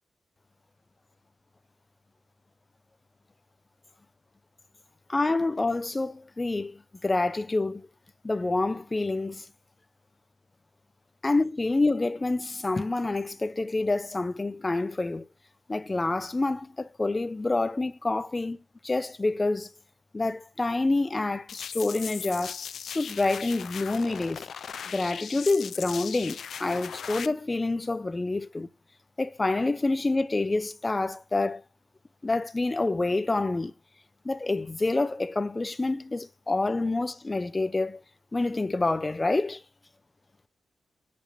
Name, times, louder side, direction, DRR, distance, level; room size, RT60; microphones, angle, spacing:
voice 1, 5.1-7.9 8.2-9.5 11.2-15.3 15.7-18.6 18.8-19.7 20.1-22.6 22.9-24.5 24.9-28.7 29.2-31.6 32.2-33.7 34.2-38.0 38.3-39.6, left 2 dB, 25° left, 0.6 m, -27 dB
sound 1, 21.5-27.3, left 7 dB, 70° left, 0.3 m, -38 dB
6.4 x 5.2 x 6.5 m
cardioid pair, 60°, 0 cm